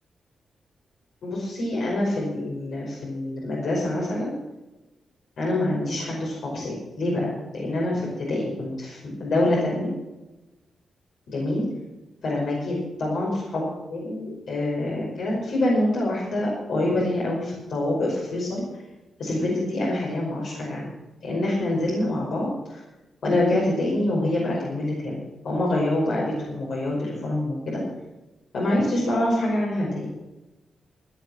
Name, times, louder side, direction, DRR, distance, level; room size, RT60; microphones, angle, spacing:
voice 1, 1.2-4.3 5.4-9.9 11.3-11.7 12.2-18.6 19.2-20.9 21.2-22.8 23.2-25.1 25.4-27.8 28.5-30.1, left 1 dB, 75° left, -4 dB, 5.5 m, -26 dB
17.5 x 9.7 x 6.2 m, 1.1 s
wide cardioid pair, 135°, 0 cm